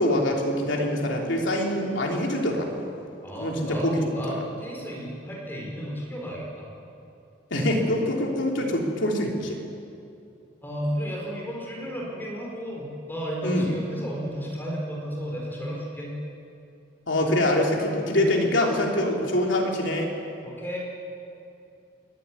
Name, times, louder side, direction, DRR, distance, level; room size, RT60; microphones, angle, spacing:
voice 1, 0.0-2.8 3.4-4.3 7.5-9.6 13.4-13.7 17.1-20.1, left 1 dB, 80° left, 0 dB, 3.1 m, -24 dB
voice 2, 3.2-6.7 10.6-16.1 20.4-20.8, equal, 10° left, -2 dB, 4.3 m, -33 dB
22.5 x 12.5 x 9.6 m, 2.6 s
head